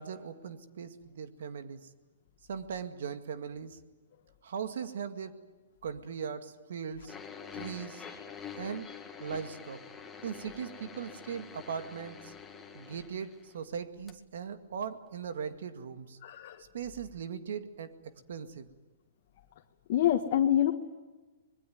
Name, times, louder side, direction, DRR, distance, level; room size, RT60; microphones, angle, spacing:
voice 1, 0.0-1.9 2.5-3.8 4.4-5.5 5.8-7.2 7.5-8.1 8.6-8.9 9.2-9.8 10.2-12.3 12.7-16.2 16.6-18.7, right 7 dB, 70° right, 9 dB, 2.0 m, -39 dB
sound 1, 7.1-13.8 14.1-14.2 15.0-15.1, left 6 dB, 10° left, 2.0 m, -46 dB
voice 2, 16.2-16.6 19.9-20.7, left 11 dB, 50° left, 1 dB, 1.7 m, -26 dB
25.5 x 21.0 x 9.3 m, 1.2 s
hypercardioid pair, 155°, 0 cm